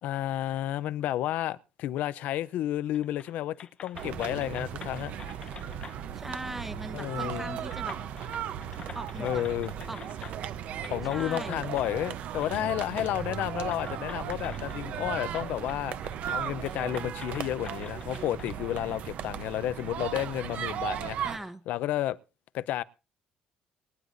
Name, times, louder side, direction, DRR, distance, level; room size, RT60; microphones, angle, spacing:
voice 1, 0.0-5.1 6.9-7.6 9.2-9.7 10.9-16.0 16.3-21.3 21.7-22.2 22.5-22.8, left 13 dB, 75° left, 0.6 m, -31 dB
sound 1, 2.9-3.3 3.6-6.0 7.1-7.2 7.6-10.5 10.8-11.9 12.4-13.1 13.7-15.0 15.3-18.5, left 7 dB, 35° left, 0.8 m, -47 dB
sound 2, 3.9-21.4, right 9 dB, 60° right, 0.8 m, -36 dB
voice 2, 6.1-8.0 8.9-9.4 9.9-10.0 11.1-11.6 21.2-21.6, right 1 dB, 10° right, 1.0 m, -39 dB
23.5 x 9.7 x 2.6 m
cardioid pair, 170°, 3 cm